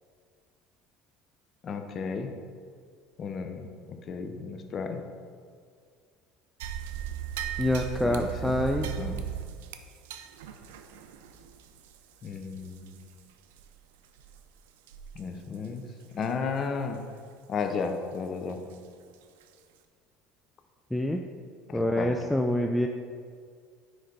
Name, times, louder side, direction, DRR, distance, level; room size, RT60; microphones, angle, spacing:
voice 1, 1.6-2.3 3.2-3.7 4.1-5.0 8.0-8.3 8.8-9.2 12.2-13.0 15.1-15.9 16.1-17.0 17.5-18.6 21.7-22.1, left 5 dB, 40° left, 6 dB, 0.6 m, -33 dB
sound 1, 6.6-13.2 13.5-13.7 14.2-14.4 14.9-15.2 15.5-15.7 16.2-16.3 18.7-18.8 19.4-19.5, right 10 dB, 90° right, 0.4 m, -38 dB
voice 2, 7.6-8.9 20.9-21.2 21.7-22.9, left 1 dB, 5° left, 3 dB, 0.3 m, -26 dB
9.4 x 3.2 x 3.9 m, 2.1 s
supercardioid pair, 115°, 0 cm